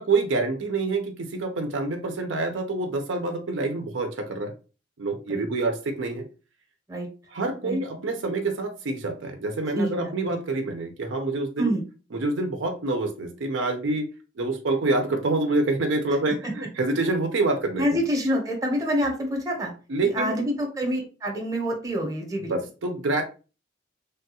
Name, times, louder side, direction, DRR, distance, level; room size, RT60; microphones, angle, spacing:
voice 1, 0.0-4.5 5.0-6.2 7.3-11.7 12.1-14.0 14.4-17.8 19.9-20.4 22.5-23.2, right 2 dB, 70° right, 4 dB, 0.5 m, -26 dB
voice 2, 9.7-10.1 11.6-11.8 16.3-16.5 17.8-19.7 20.0-22.5, equal, 20° right, 1 dB, 0.8 m, -27 dB
3.3 x 2.3 x 2.7 m, 0.33 s
head